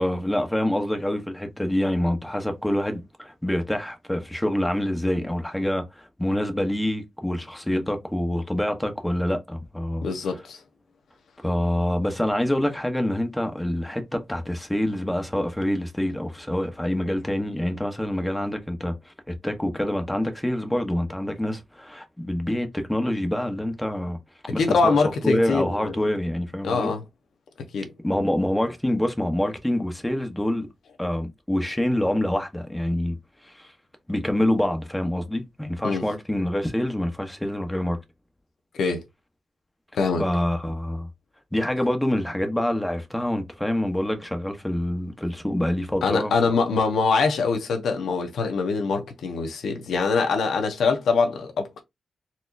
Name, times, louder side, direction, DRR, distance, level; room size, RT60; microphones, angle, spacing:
voice 1, 0.0-10.1 11.4-24.2 24.5-25.0 25.2-26.9 28.0-30.7 31.0-33.2 33.4-33.7 34.1-38.0 40.2-41.1 41.5-46.3, left 1 dB, 5° left, 0.9 m, -26 dB
voice 2, 10.0-10.6 24.6-26.0 26.6-27.0 27.7-27.9 35.8-36.0 38.8-39.0 39.9-40.2 46.0-51.8, left 4 dB, 90° left, 0.9 m, -23 dB
4.2 x 2.7 x 2.5 m
cardioid pair, 95°, 0 cm